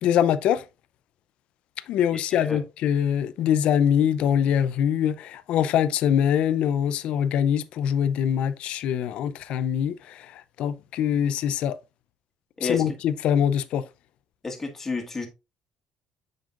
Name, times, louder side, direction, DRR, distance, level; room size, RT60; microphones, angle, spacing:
voice 1, 0.0-0.6 1.9-10.3 10.6-11.7 12.6-13.8, left 9 dB, 65° left, 0.6 m, -23 dB
voice 2, 2.1-2.6 12.6-12.9 14.4-15.3, left 3 dB, 15° left, 1.7 m, -31 dB
7.6 x 5.5 x 2.5 m
cardioid pair, 145°, 2 cm